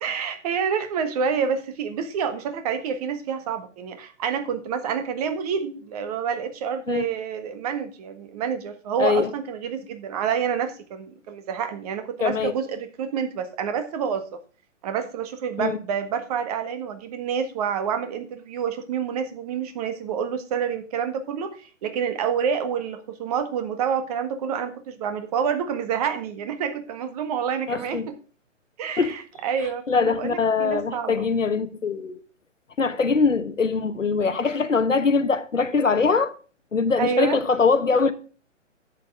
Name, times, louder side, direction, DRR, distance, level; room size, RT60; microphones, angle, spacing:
voice 1, 0.0-14.3 14.8-28.0 28.8-31.3 37.0-37.4, right 7 dB, 30° right, 1.7 m, -28 dB
voice 2, 9.0-9.3 12.2-12.5 15.6-15.8 27.7-28.1 29.0-29.2 29.9-32.2 32.8-36.3 36.7-38.1, left 4 dB, 75° left, 1.2 m, -22 dB
11.0 x 8.4 x 3.6 m
figure-of-eight pair, 130°, 38 cm